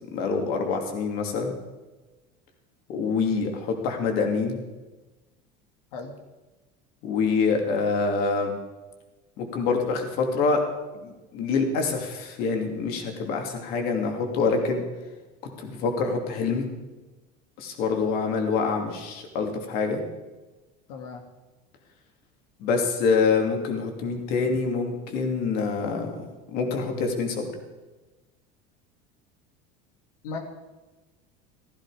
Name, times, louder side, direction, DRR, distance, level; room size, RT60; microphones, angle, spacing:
voice 1, 0.1-1.5 2.9-4.6 7.0-8.5 9.4-10.6 10.9-14.8 15.6-16.7 17.6-20.0 22.6-26.1 26.5-27.5, left 4 dB, 50° left, 3 dB, 2.8 m, -26 dB
voice 2, 20.9-21.2 30.2-30.4, left 4 dB, 90° left, 3 dB, 2.1 m, -35 dB
15.5 x 15.0 x 5.0 m, 1.2 s
cardioid pair, 165°, 20 cm